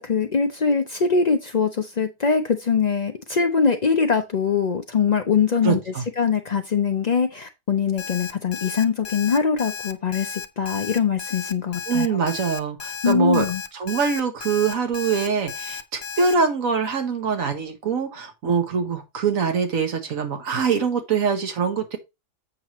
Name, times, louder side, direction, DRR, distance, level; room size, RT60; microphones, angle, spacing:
voice 1, 0.0-5.8 6.2-12.2 13.0-13.6, left 6 dB, 85° left, 0.3 m, -22 dB
voice 2, 5.6-6.0 11.9-13.5 13.7-22.0, right 5 dB, 55° right, 1.5 m, -23 dB
Alarm, 8.0-16.3, left 6 dB, 60° left, 0.7 m, -34 dB
7.6 x 6.1 x 3.0 m
omnidirectional pair, 1.7 m